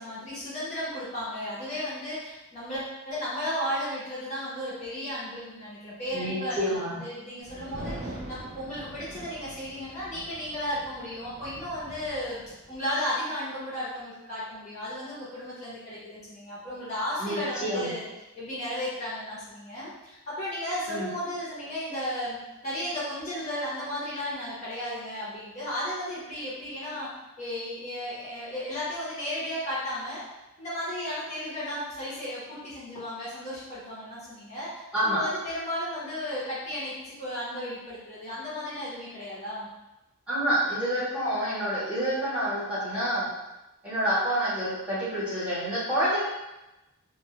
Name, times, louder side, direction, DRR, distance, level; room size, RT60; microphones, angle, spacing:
voice 1, 0.0-18.0 18.3-22.4 22.6-27.1 27.4-30.2 30.6-39.7, left 1 dB, 30° left, -9 dB, 0.6 m, -34 dB
voice 2, 6.1-7.0 17.2-17.9 20.9-21.1 34.9-35.2 40.3-43.3 43.8-46.2, equal, 5° right, -12 dB, 0.9 m, -28 dB
sound 1, 7.4-12.9, right 1 dB, 40° right, 0.4 m, -43 dB
2.1 x 2.1 x 2.8 m, 0.99 s
head